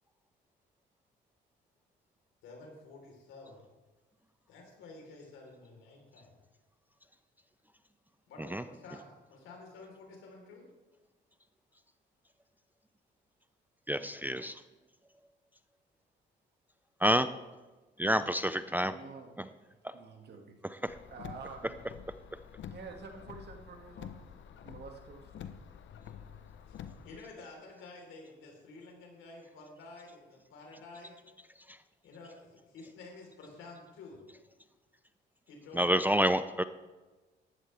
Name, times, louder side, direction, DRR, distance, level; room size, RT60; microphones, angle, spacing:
voice 1, 2.4-3.7 4.5-6.4 8.3-10.7 25.9-26.4 26.7-26.8 27.0-31.2 32.0-34.2 35.5-35.9, left 3 dB, 85° left, 0 dB, 3.9 m, -51 dB
voice 2, 13.9-14.6 17.0-17.3 18.0-18.9 19.4-19.5 20.8-21.0 31.7-31.8 35.7-36.6, equal, 10° right, 11 dB, 0.4 m, -28 dB
voice 3, 18.9-19.4 19.7-20.6 21.1-21.8 22.7-25.5, right 4 dB, 55° right, 3 dB, 2.1 m, -49 dB
Car, 20.9-27.2, left 8 dB, 70° left, 0.8 m, -48 dB
14.5 x 11.0 x 3.4 m, 1.2 s
cardioid pair, 90°, 20 cm